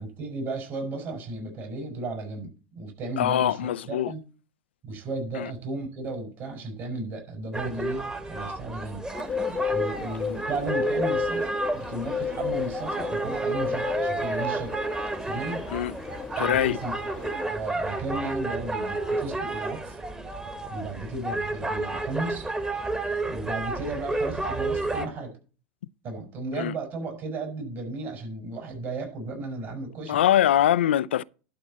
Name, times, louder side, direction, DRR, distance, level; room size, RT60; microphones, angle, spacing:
voice 1, 0.0-4.2 4.8-9.0 9.7-14.7 15.3-15.6 16.4-20.0 20.7-22.5 23.2-25.3 26.0-30.2, right 2 dB, 40° right, 5.2 m, -34 dB
voice 2, 3.2-4.1 5.4-5.5 15.7-15.9 16.4-16.8 26.6-26.7 30.1-31.2, left 11 dB, 80° left, 0.4 m, -23 dB
sound 1, 7.5-25.1, right 2 dB, 15° right, 1.5 m, -31 dB
Bird, 9.1-17.4, left 7 dB, 20° left, 0.4 m, -33 dB
11.5 x 4.1 x 7.3 m
hypercardioid pair, 95°, 6 cm